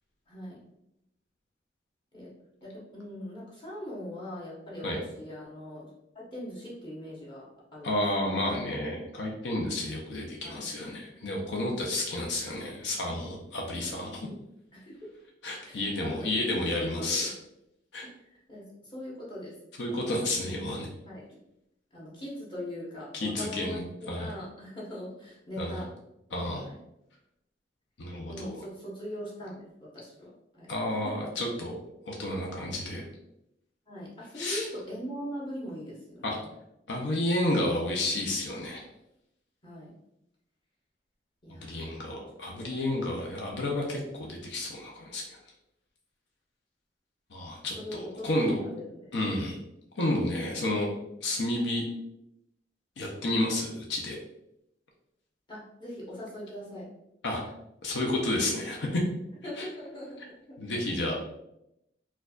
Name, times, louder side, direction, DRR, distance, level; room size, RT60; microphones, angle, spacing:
voice 1, 0.3-0.6 2.1-2.3 2.6-5.9 6.1-8.2 10.4-10.7 14.7-15.0 15.6-17.3 18.0-18.1 18.5-19.5 19.9-20.3 21.0-21.4 21.9-25.9 26.5-26.8 28.2-31.3 33.9-36.5 39.6-39.9 41.4-42.0 42.6-42.7 47.8-49.1 55.5-56.9 59.4-60.2 60.5-60.6, equal, 25° left, -6 dB, 1.1 m, -41 dB
voice 2, 7.8-14.3 15.4-17.3 17.9-18.1 19.8-20.9 23.1-23.8 24.1-24.3 25.6-25.8 26.3-26.7 28.0-28.5 30.7-31.7 32.1-33.0 34.4-34.7 36.2-36.4 36.9-38.8 41.6-45.4 47.3-48.6 49.1-49.6 50.0-50.9 51.2-51.9 53.0-54.2 57.2-57.4 57.8-59.0 59.6-59.7 60.6-61.1, left 1 dB, 80° left, -1 dB, 0.6 m, -31 dB
4.5 x 2.4 x 2.4 m, 0.83 s
head